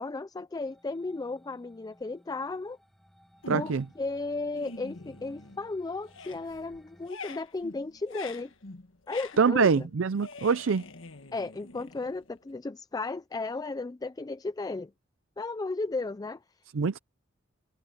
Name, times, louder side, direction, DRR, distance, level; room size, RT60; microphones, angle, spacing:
voice 1, 0.0-2.8 3.5-8.5 9.1-9.9 11.3-14.9 15.4-16.4, left 3 dB, 20° left, 0.4 m, -35 dB
sound 1, 0.6-7.1, equal, ahead, 4.9 m, -60 dB
sound 2, 3.4-4.0 4.4-5.7 6.0-12.5, left 3 dB, 85° left, 1.5 m, -45 dB
voice 2, 3.5-3.8 9.4-10.8 16.7-17.0, right 5 dB, 80° right, 0.5 m, -24 dB
head